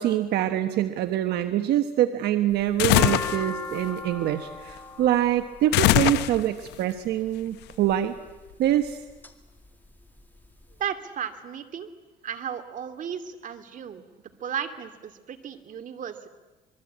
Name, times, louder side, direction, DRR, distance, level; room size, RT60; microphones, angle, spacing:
voice 1, 0.0-8.1 8.6-9.0, right 12 dB, 75° right, 8 dB, 1.3 m, -25 dB
sound 1, 2.5-6.7 7.6-8.0 8.6-9.3 9.6-9.7 9.9-10.7, left 3 dB, 10° left, 2.1 m, -37 dB
sound 2, 2.8-3.4 5.7-6.7, left 16 dB, 85° left, 0.8 m, -21 dB
voice 2, 10.8-11.9 12.2-14.0 14.4-16.3, right 8 dB, 50° right, 8 dB, 2.5 m, -34 dB
26.0 x 22.5 x 8.7 m, 1.1 s
cardioid pair, 110°, 17 cm